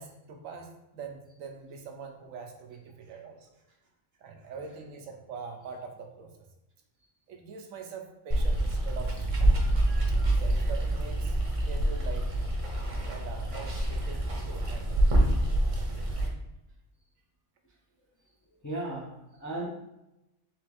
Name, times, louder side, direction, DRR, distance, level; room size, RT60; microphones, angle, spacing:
voice 1, 0.0-3.5 4.2-6.5 7.3-9.7 10.4-11.3 11.6-12.3 13.1-15.0, right 5 dB, 85° right, 4 dB, 1.1 m, -43 dB
Water, 8.3-16.3, right 1 dB, 35° right, 0.7 m, -26 dB
voice 2, 18.6-19.7, right 2 dB, 25° left, -3 dB, 0.4 m, -35 dB
3.7 x 3.4 x 3.4 m, 0.89 s
omnidirectional pair, 1.3 m